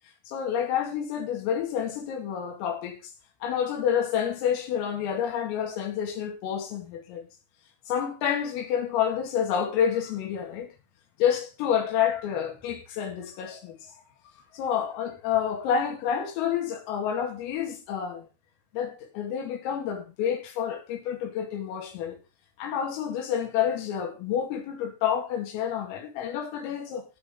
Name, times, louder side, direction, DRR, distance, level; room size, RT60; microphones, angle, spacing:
voice 1, 0.3-3.0 3.4-7.3 7.9-10.7 11.2-13.9 14.5-18.3 18.7-22.2 22.6-27.0, left 8 dB, 85° left, 5.1 m, -29 dB
15.5 x 5.8 x 5.5 m
omnidirectional pair, 5.9 m